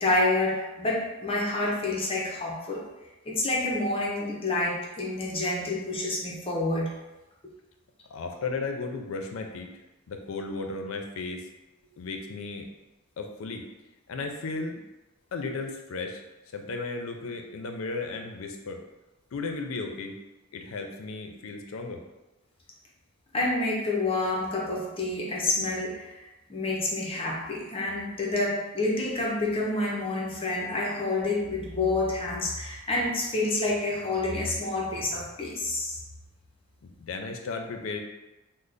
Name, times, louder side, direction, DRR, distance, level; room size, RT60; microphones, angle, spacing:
voice 1, 0.0-2.8 3.3-6.9 23.3-26.1 26.5-36.0, left 2 dB, 25° left, -3 dB, 0.5 m, -28 dB
voice 2, 8.1-9.7 10.1-11.5 12.0-12.7 13.2-13.7 14.1-14.8 15.3-16.2 16.5-18.8 19.3-20.2 20.5-22.0 36.8-38.0, left 3 dB, 75° left, 4 dB, 0.4 m, -35 dB
3.2 x 2.0 x 3.8 m, 1.0 s
head